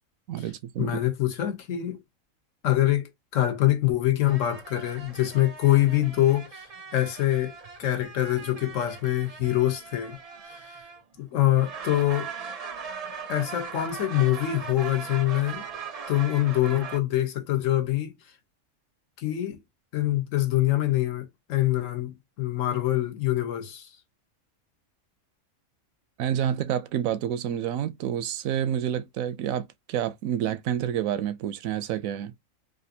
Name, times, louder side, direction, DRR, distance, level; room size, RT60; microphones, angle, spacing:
voice 1, 0.3-1.0 26.2-32.3, right 10 dB, 90° right, 1.0 m, -28 dB
voice 2, 0.8-2.0 2.6-6.7 6.9-10.2 10.5-10.8 11.2-12.3 13.3-15.7 16.1-18.1 19.2-19.6 19.9-23.9, left 14 dB, 75° left, 1.1 m, -25 dB
sound 1, 4.2-11.2 11.5-17.0, right 6 dB, 50° right, 0.4 m, -40 dB
3.4 x 2.5 x 2.7 m
omnidirectional pair, 1.4 m